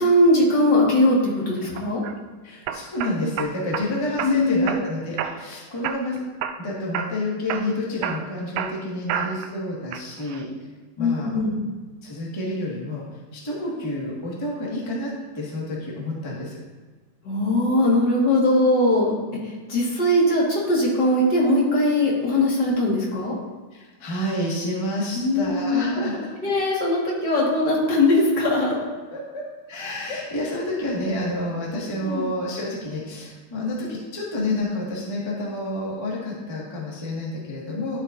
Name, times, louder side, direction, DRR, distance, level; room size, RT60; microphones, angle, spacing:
voice 1, 0.0-2.0 4.2-4.8 11.0-11.6 17.2-19.1 19.4-23.3 25.1-26.1 26.4-28.7 32.0-32.3, left 1 dB, 40° left, -4 dB, 2.1 m, -20 dB
sound 1, 1.8-2.1 2.7-3.9 4.2-4.8 5.2-5.5 5.8-6.6 6.9-7.2 7.5-9.5 9.9-10.4, right 8 dB, 90° right, 1.6 m, -30 dB
voice 2, 2.4-6.2 6.6-10.5 11.0-11.3 12.0-13.0 13.3-16.6 23.7-26.3 28.6-28.7 29.1-29.2 29.7-38.0, left 1 dB, 15° left, -5 dB, 0.9 m, -29 dB
11.5 x 7.9 x 2.7 m, 1.3 s
omnidirectional pair, 3.7 m